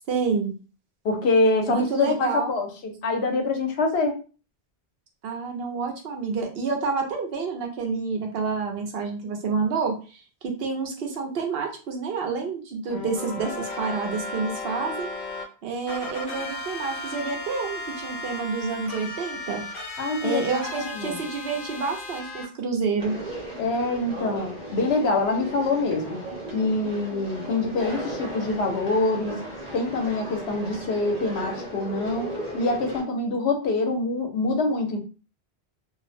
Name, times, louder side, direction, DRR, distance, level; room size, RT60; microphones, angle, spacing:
voice 1, 0.1-0.5 1.7-2.5 5.2-15.1 15.6-19.6 20.2-23.2, right 4 dB, 70° right, 2 dB, 0.8 m, -28 dB
voice 2, 1.0-4.2 20.0-21.2 23.6-26.2 26.5-29.4 29.7-35.0, left 3 dB, 80° left, 4 dB, 0.9 m, -25 dB
sound 1, 12.9-15.4 15.9-22.4, left 2 dB, 55° left, 0.6 m, -35 dB
Conversation, 23.0-33.0, right 1 dB, 45° right, 1.1 m, -36 dB
2.4 x 2.0 x 2.6 m, 0.35 s
omnidirectional pair, 1.1 m